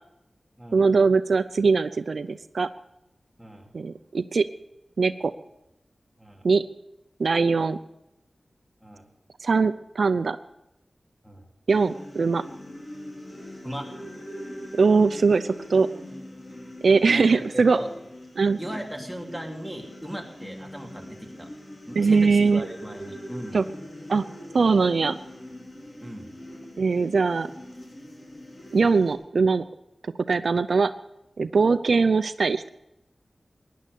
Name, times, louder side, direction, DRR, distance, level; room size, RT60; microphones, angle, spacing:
voice 1, 0.7-2.7 3.7-4.5 5.0-5.3 6.4-6.6 7.2-7.8 9.4-10.4 11.7-12.4 14.7-15.9 16.8-17.8 18.4-18.6 22.0-22.7 23.5-23.6 24.1-24.2 24.5-25.2 26.8-27.5 28.7-29.6 30.3-30.9 31.4-32.7, right 4 dB, 80° right, 12 dB, 0.5 m, -21 dB
voice 2, 3.4-3.7 6.2-6.5 8.8-9.0 11.2-11.5 13.6-13.9 17.1-17.9 18.6-21.5 21.9-23.6 26.0-26.3, equal, ahead, 0 dB, 3.1 m, -37 dB
sound 1, 11.7-29.1, left 1 dB, 40° left, 3.8 m, -42 dB
16.0 x 10.5 x 6.9 m, 0.87 s
wide cardioid pair, 55°, 0 cm